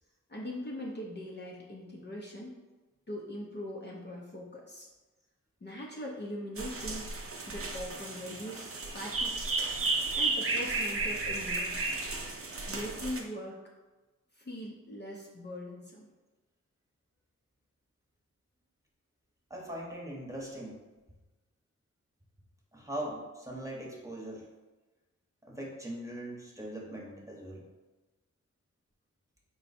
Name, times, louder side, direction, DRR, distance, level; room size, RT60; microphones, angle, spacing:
voice 1, 0.3-2.5 3.1-4.9 5.6-7.2 7.5-9.3 10.2-12.0 12.7-13.6 14.4-16.1, equal, 35° left, -3 dB, 0.7 m, -41 dB
sound 1, 6.6-13.2, right 3 dB, 45° right, 0.7 m, -33 dB
voice 2, 19.5-20.8 22.7-24.5 25.4-27.7, right 1 dB, 10° right, -3 dB, 1.1 m, -41 dB
4.3 x 2.3 x 4.1 m, 1.2 s
cardioid pair, 55°, 31 cm